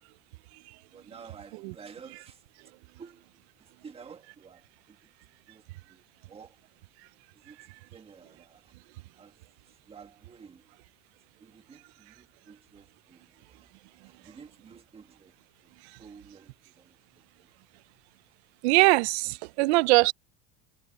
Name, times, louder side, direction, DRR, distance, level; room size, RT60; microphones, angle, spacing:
voice 1, 0.9-2.4 3.0-5.1 5.5-6.6 7.3-10.7 11.4-15.3 15.6-17.5 18.3-18.4, right 6 dB, 20° right, 1.9 m, -52 dB
voice 2, 18.6-20.1, right 24 dB, 80° right, 0.6 m, -21 dB
cardioid pair, 155°, 32 cm